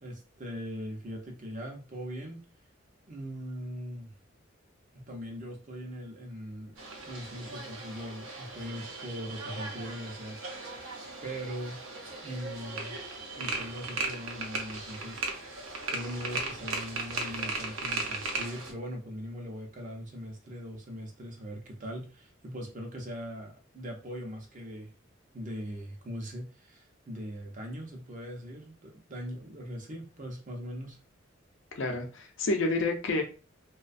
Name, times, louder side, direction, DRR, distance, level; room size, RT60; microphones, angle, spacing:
voice 1, 0.0-2.5 3.1-4.1 4.9-6.8 7.0-10.4 11.2-11.8 12.2-12.9 13.3-15.2 15.9-24.9 25.3-31.0, equal, 40° right, 0.6 m, -40 dB
sound 1, 6.8-18.7, right 3 dB, 85° right, 0.6 m, -37 dB
voice 2, 31.8-33.2, left 2 dB, 65° left, 0.6 m, -29 dB
2.4 x 2.2 x 2.5 m
head